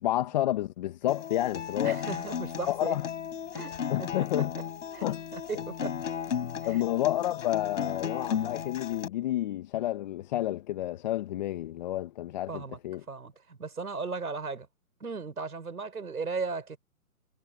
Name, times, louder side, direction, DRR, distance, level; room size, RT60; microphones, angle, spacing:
voice 1, 0.0-2.0 2.7-3.1 3.9-4.5 5.0-5.2 5.5-5.6 6.6-13.0, left 14 dB, 30° left, 1.4 m, -30 dB
Acoustic guitar, 1.1-9.1, left 7 dB, 55° left, 5.3 m, -35 dB
voice 2, 1.8-3.0 3.5-4.3 4.9-5.1 5.3-6.0 6.6-6.8 12.5-12.8 13.1-14.7 15.0-16.8, right 4 dB, 80° right, 7.2 m, -36 dB
hypercardioid pair, 150°, 44 cm